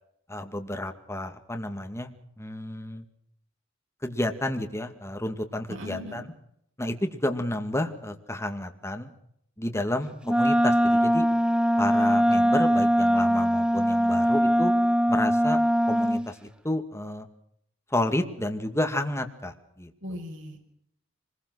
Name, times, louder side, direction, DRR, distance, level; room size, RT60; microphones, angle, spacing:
voice 1, 0.3-2.1 2.4-3.0 4.0-6.2 6.8-9.1 9.6-11.3 11.8-14.7 15.1-15.6 15.9-16.4 16.6-17.3 17.9-19.9, left 1 dB, 15° left, 5 dB, 2.2 m, -31 dB
voice 2, 5.7-6.2 20.0-20.7, left 1 dB, 70° right, 3 dB, 5.8 m, -38 dB
Wind instrument woodwind instrument, 10.3-16.3, equal, 5° right, 0.9 m, -22 dB
25.0 x 21.5 x 6.3 m, 0.72 s
head